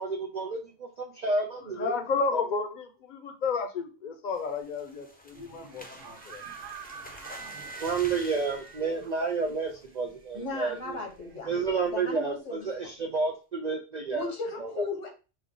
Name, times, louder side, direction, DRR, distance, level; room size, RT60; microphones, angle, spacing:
voice 1, 0.0-2.0 2.3-2.4 7.8-11.0 11.5-14.3 14.6-14.9, right 4 dB, 60° right, 2 dB, 0.4 m, -30 dB
voice 2, 1.6-6.4, left 4 dB, 45° left, 7 dB, 0.7 m, -32 dB
sound 1, 4.3-10.1 10.5-10.8 11.1-11.2 11.6-11.9, left 1 dB, 10° left, 0.5 m, -49 dB
sound 2, 5.3-12.2, right 6 dB, 80° right, 1.1 m, -47 dB
voice 3, 10.3-12.9 14.1-15.1, left 3 dB, 80° left, 2 dB, 1.6 m, -36 dB
5.4 x 2.3 x 3.7 m, 0.32 s
omnidirectional pair, 1.3 m